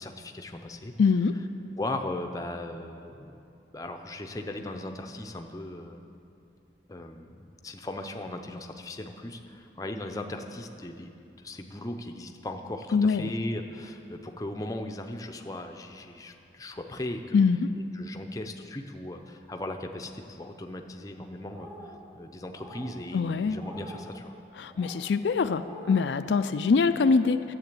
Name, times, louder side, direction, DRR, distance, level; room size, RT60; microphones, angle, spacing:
voice 1, 0.0-0.9 1.8-3.4 3.7-6.0 6.9-17.4 18.0-24.3, left 1 dB, 20° left, 4 dB, 0.6 m, -38 dB
voice 2, 1.0-1.3 12.9-13.3 17.3-17.7 23.1-23.6 24.6-27.5, left 5 dB, 80° left, 10 dB, 0.4 m, -24 dB
sound 1, 21.4-22.0 22.5-22.9 23.5-24.0 24.6-25.0 25.5-26.0, equal, 30° right, 2.5 m, -46 dB
11.0 x 7.8 x 8.3 m, 2.6 s
head